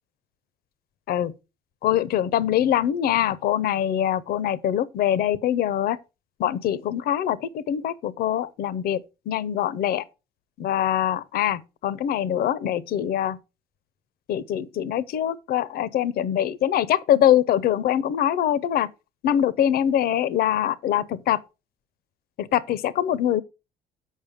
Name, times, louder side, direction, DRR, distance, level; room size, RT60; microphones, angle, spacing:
voice 1, 1.8-6.0 6.4-9.0 9.3-10.0 10.6-13.4 14.3-18.9 19.2-21.4 22.4-23.4, left 11 dB, 65° left, 0.6 m, -23 dB
7.4 x 5.2 x 5.0 m
cardioid pair, 110°, 17 cm